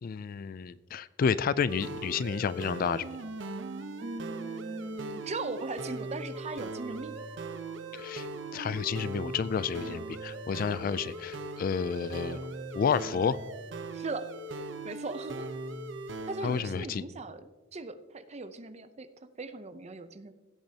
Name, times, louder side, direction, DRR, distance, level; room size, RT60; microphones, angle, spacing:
voice 1, 0.0-3.0 7.9-8.3 8.5-12.5 12.7-13.4 16.4-17.0, left 6 dB, 45° left, 17 dB, 0.3 m, -30 dB
sound 1, 1.7-16.6, right 3 dB, 70° right, 0.8 m, -40 dB
voice 2, 4.0-7.2 13.9-14.2 14.8-15.5 16.3-19.1 19.4-20.3, right 3 dB, 35° right, 11 dB, 0.6 m, -39 dB
Wind instrument woodwind instrument, 6.2-11.5, right 3 dB, 20° right, 1.2 m, -56 dB
16.5 x 8.9 x 2.8 m, 1.1 s
head